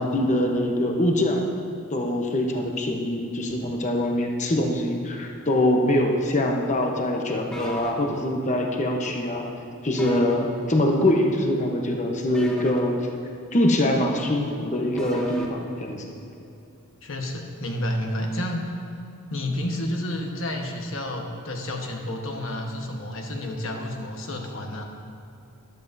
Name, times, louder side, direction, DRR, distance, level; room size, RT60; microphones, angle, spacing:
voice 1, 0.0-1.4 1.9-9.4 9.8-12.9 13.5-16.1, left 1 dB, 35° left, 1 dB, 1.0 m, -23 dB
sound 1, 7.5-7.9 10.0-10.4 12.3-12.8 15.0-15.5, equal, 5° left, 1.0 m, -36 dB
voice 2, 17.0-18.7 19.3-24.8, left 1 dB, 60° left, 2 dB, 1.3 m, -30 dB
13.5 x 12.0 x 2.7 m, 2.7 s
head